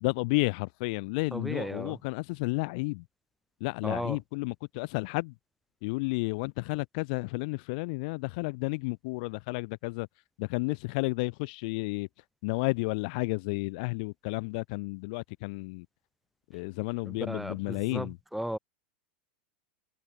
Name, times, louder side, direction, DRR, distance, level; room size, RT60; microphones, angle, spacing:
voice 1, 0.0-3.0 3.6-5.3 5.8-10.1 10.4-12.1 12.4-15.9 16.5-18.1, left 27 dB, 45° left, 2.3 m, -32 dB
voice 2, 1.3-2.0 3.8-4.2 17.0-18.6, right 1 dB, ahead, 4.0 m, -35 dB
supercardioid pair, 170°, 6 cm